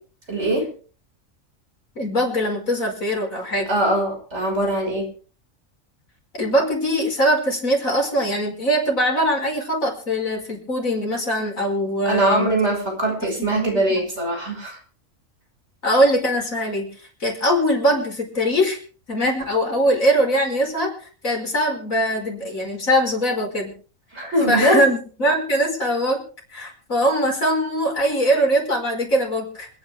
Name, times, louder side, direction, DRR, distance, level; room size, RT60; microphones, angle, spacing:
voice 1, 0.3-0.7 3.7-5.1 12.0-14.8 24.1-24.9, right 1 dB, 55° right, 2 dB, 5.7 m, -21 dB
voice 2, 2.0-3.7 6.4-12.5 13.4-13.7 14.0-14.1 15.8-16.9 17.2-18.8 19.1-23.7 24.5-26.2 26.5-29.7, equal, 85° left, 1 dB, 5.5 m, -21 dB
27.0 x 10.0 x 3.5 m, 0.40 s
omnidirectional pair, 1.4 m